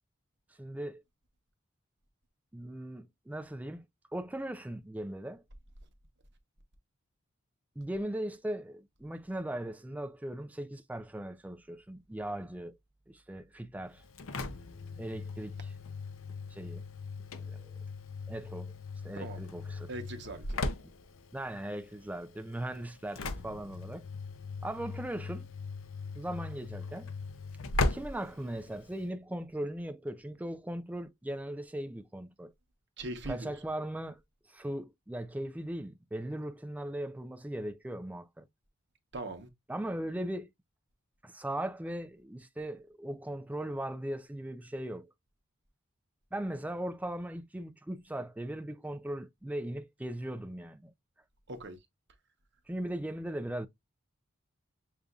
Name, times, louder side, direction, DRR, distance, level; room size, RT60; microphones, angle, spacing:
voice 1, 0.6-1.0 2.5-3.8 4.1-5.4 7.8-12.8 13.1-14.0 15.0-15.7 16.5-16.8 17.3-17.7 18.3-18.7 19.0-19.9 20.8-20.9 21.3-24.1 24.6-25.5 26.1-27.1 27.9-32.5 33.3-34.2 34.5-38.5 39.7-40.5 41.2-45.1 46.3-50.9 52.7-53.7, right 1 dB, 5° right, 0.3 m, -38 dB
Engine / Slam, 13.9-29.1, left 3 dB, 80° left, 0.6 m, -39 dB
voice 2, 19.9-20.6 33.0-33.5 39.1-39.5 51.5-51.8, right 2 dB, 55° right, 0.9 m, -40 dB
6.7 x 2.5 x 2.3 m
head